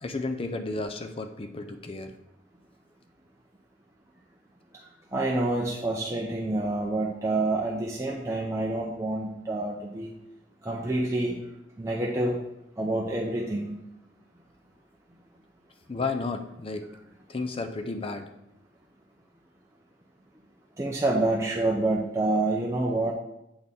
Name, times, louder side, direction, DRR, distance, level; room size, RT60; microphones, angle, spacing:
voice 1, 0.0-2.1 15.9-16.9 17.3-18.3, left 3 dB, 30° left, 7 dB, 0.5 m, -32 dB
voice 2, 5.1-10.1 10.6-11.4 11.8-12.4 12.8-13.7 20.8-23.1, right 2 dB, 15° right, -3 dB, 0.6 m, -27 dB
7.7 x 4.3 x 3.6 m, 0.85 s
head